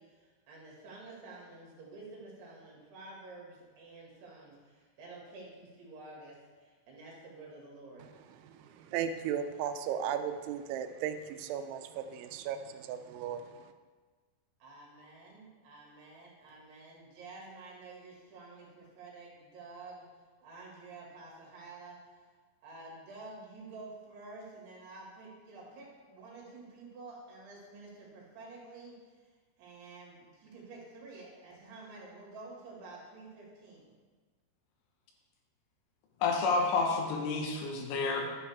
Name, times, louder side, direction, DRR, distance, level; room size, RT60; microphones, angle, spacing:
voice 1, 0.0-8.1 14.6-20.1 20.4-22.0 22.6-28.9 29.6-33.9, right 3 dB, 65° right, -3 dB, 4.2 m, -50 dB
voice 2, 8.3-13.7, right 8 dB, 85° right, 9 dB, 3.0 m, -36 dB
voice 3, 36.2-38.3, left 4 dB, 85° left, 1 dB, 3.8 m, -29 dB
11.5 x 9.6 x 3.6 m, 1.4 s
omnidirectional pair, 5.3 m